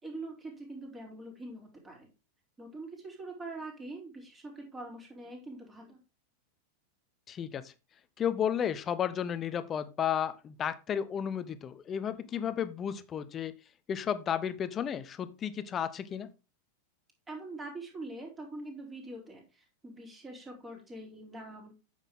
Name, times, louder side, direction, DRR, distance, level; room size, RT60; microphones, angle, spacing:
voice 1, 0.0-2.1 2.6-6.0 17.3-21.7, right 2 dB, 15° right, 1 dB, 3.8 m, -44 dB
voice 2, 7.3-7.7 8.2-13.5 13.9-16.3, left 8 dB, 25° left, 14 dB, 0.8 m, -33 dB
9.0 x 6.5 x 3.7 m, 0.30 s
figure-of-eight pair, 90°, 0 cm